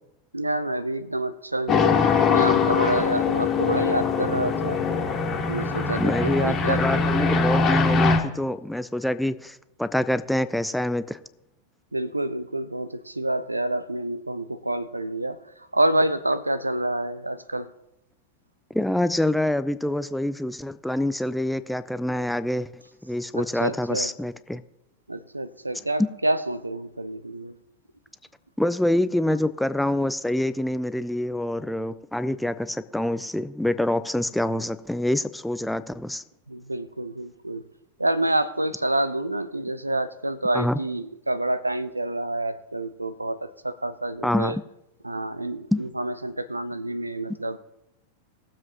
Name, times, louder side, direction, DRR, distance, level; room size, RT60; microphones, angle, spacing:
voice 1, 0.3-4.8 5.5-6.8 11.9-15.4 15.7-17.7 23.3-24.1 25.1-27.5 36.5-37.6 38.0-44.6 45.0-47.6, right 1 dB, 85° right, 15 dB, 0.5 m, -28 dB
sound 1, 1.7-8.2, left 5 dB, 30° left, 1.7 m, -22 dB
voice 2, 6.0-11.2 18.7-24.6 28.6-36.2 40.5-40.8 44.2-44.6 45.7-45.8, left 1 dB, 5° left, 13 dB, 0.4 m, -26 dB
19.5 x 7.5 x 2.9 m, 0.88 s
figure-of-eight pair, 90°, 0 cm